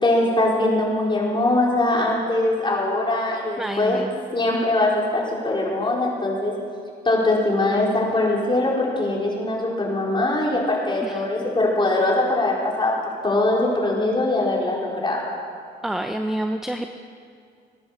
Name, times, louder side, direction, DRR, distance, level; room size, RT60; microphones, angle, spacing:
voice 1, 0.0-4.0 4.3-6.5 7.0-13.0 13.2-15.3, left 2 dB, 25° left, -3 dB, 4.7 m, -22 dB
voice 2, 3.6-4.1 11.0-11.5 15.8-16.9, right 1 dB, ahead, 6 dB, 0.8 m, -28 dB
19.5 x 10.5 x 7.2 m, 2.3 s
cardioid pair, 90°, 20 cm